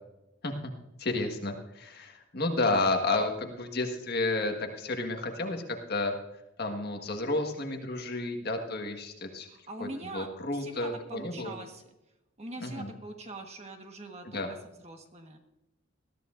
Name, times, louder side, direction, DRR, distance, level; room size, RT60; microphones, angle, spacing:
voice 1, 1.0-6.1 6.6-9.5 9.8-11.6 12.6-12.9 14.2-14.5, left 2 dB, 50° left, 4 dB, 1.6 m, -31 dB
voice 2, 9.7-10.3 10.5-11.8 12.4-14.4 14.8-15.4, right 2 dB, 30° right, 4 dB, 1.4 m, -42 dB
20.5 x 14.0 x 2.6 m, 0.90 s
head